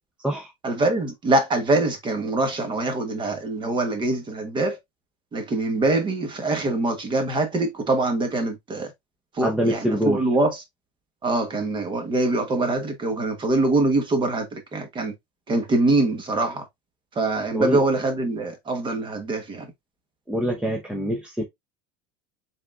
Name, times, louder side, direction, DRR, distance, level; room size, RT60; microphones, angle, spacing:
voice 1, 0.6-4.8 5.3-8.9 9.3-10.6 11.2-15.1 15.5-16.7 17.1-19.7, right 2 dB, 25° right, 1.2 m, -24 dB
voice 2, 9.4-10.2 17.5-17.8 20.3-21.4, equal, 5° right, 0.7 m, -24 dB
4.8 x 3.7 x 2.4 m
supercardioid pair, 135°, 20 cm